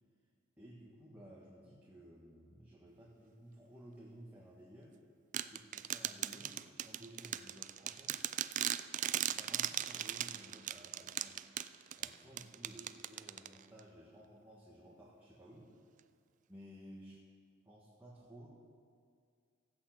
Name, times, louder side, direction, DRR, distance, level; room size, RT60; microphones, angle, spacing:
voice 1, 0.6-5.0 5.3-8.3 9.3-11.5 12.0-15.8 16.5-17.2 17.6-18.5, equal, 10° right, -6 dB, 1.5 m, -56 dB
sound 1, 5.3-13.8, right 11 dB, 35° right, 0.3 m, -39 dB
15.5 x 8.6 x 6.0 m, 2.2 s
head